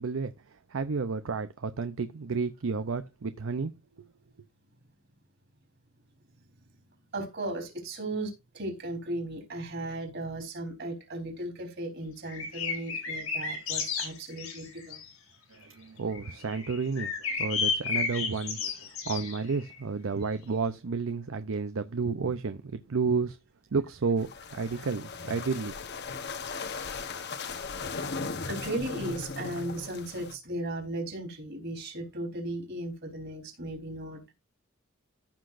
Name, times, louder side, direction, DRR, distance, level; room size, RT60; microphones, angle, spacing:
voice 1, 0.0-4.1 15.5-23.4 23.7-25.8, right 4 dB, 70° right, 0.6 m, -31 dB
voice 2, 7.1-15.0 28.5-34.3, right 1 dB, 55° right, 3.8 m, -36 dB
sound 1, 12.3-15.1 16.1-19.7, left 5 dB, 80° left, 3.4 m, -33 dB
sound 2, 24.2-30.4, left 4 dB, 55° left, 1.0 m, -37 dB
15.0 x 5.9 x 2.5 m
head